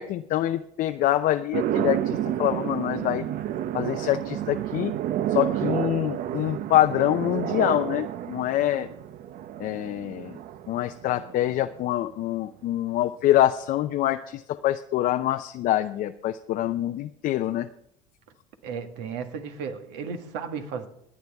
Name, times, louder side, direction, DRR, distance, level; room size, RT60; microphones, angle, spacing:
voice 1, 0.0-3.2 3.7-4.9 5.3-8.9 9.6-10.4 10.7-17.7, left 13 dB, 55° left, 0.6 m, -25 dB
sound 1, 1.5-11.9, right 11 dB, 55° right, 0.7 m, -30 dB
voice 2, 18.6-20.9, right 6 dB, 70° right, 1.7 m, -34 dB
26.0 x 9.4 x 3.5 m
hypercardioid pair, 85°, 18 cm